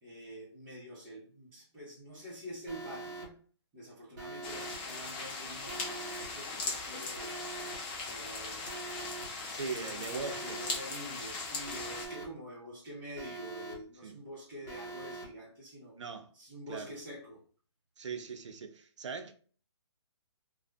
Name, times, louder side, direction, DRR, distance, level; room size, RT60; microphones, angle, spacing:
voice 1, 0.0-3.4 3.7-7.4 8.1-8.7 9.6-16.0 16.3-17.4, equal, 15° right, 1.0 m, -47 dB
Alarm, 2.7-3.3 4.2-4.8 5.7-6.3 7.2-7.8 8.7-9.3 10.2-10.8 11.7-12.3 13.2-13.8 14.7-15.3, right 3 dB, 40° right, 0.8 m, -43 dB
sound 1, 4.4-12.1, left 3 dB, 20° left, 0.4 m, -39 dB
voice 2, 9.5-10.6 11.0-11.2 14.0-14.2 16.0-16.3 16.7-16.9 18.0-19.3, right 5 dB, 75° right, 0.6 m, -40 dB
2.6 x 2.4 x 2.3 m
hypercardioid pair, 155°, 15 cm